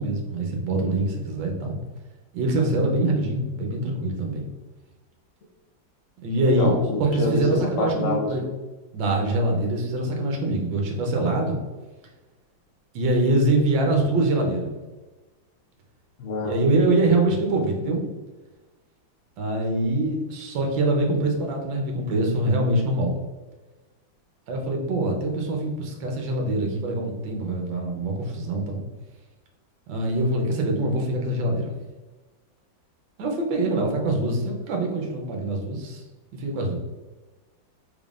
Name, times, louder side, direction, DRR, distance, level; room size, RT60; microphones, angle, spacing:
voice 1, 0.0-1.8 2.3-4.5 6.2-6.7 7.0-8.4 8.9-11.6 12.9-14.7 16.4-18.1 19.4-23.2 24.5-28.8 29.9-31.7 33.2-36.0 36.3-36.8, right 2 dB, 75° right, 1 dB, 1.5 m, -24 dB
voice 2, 6.4-8.5 16.2-16.5, left 2 dB, 65° left, 1 dB, 0.7 m, -26 dB
4.1 x 3.6 x 2.4 m, 1.2 s
omnidirectional pair, 2.1 m